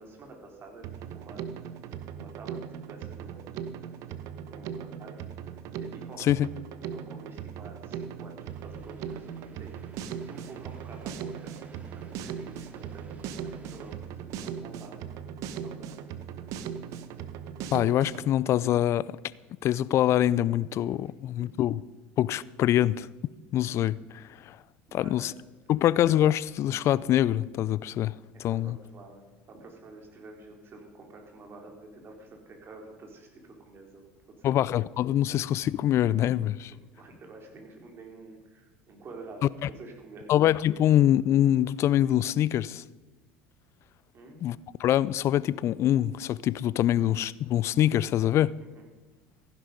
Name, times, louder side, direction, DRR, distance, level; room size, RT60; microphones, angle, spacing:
voice 1, 0.0-1.5 2.2-3.6 4.5-5.2 5.5-6.3 6.8-11.5 11.9-15.0 15.6-16.0 21.4-21.6 24.9-25.3 28.5-34.1 34.4-34.5 36.9-40.3 44.1-44.4 48.7-48.9, right 3 dB, 40° right, 4.1 m, -48 dB
Drum kit, 0.8-18.3, right 8 dB, 60° right, 1.0 m, -39 dB
sound 1, 8.5-14.0, right 2 dB, 25° right, 2.4 m, -54 dB
voice 2, 17.7-19.2 19.6-21.8 22.2-23.1 23.5-24.6 24.9-25.3 25.7-28.1 28.4-28.8 34.4-36.7 40.3-42.8 44.4-48.5, left 12 dB, 50° left, 0.5 m, -24 dB
15.0 x 11.0 x 5.2 m
hypercardioid pair, 75°, 6 cm